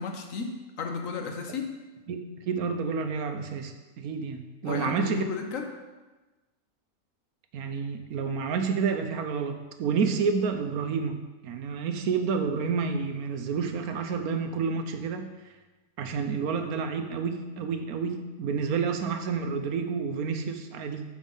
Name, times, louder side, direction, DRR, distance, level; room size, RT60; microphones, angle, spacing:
voice 1, 0.0-1.8 4.6-5.7 18.7-18.8, left 5 dB, 65° left, 4 dB, 1.3 m, -34 dB
voice 2, 2.1-5.3 7.5-11.2 11.4-15.3 16.0-21.0, right 5 dB, 75° right, 7 dB, 1.2 m, -29 dB
7.2 x 5.2 x 5.4 m, 1.2 s
omnidirectional pair, 1.6 m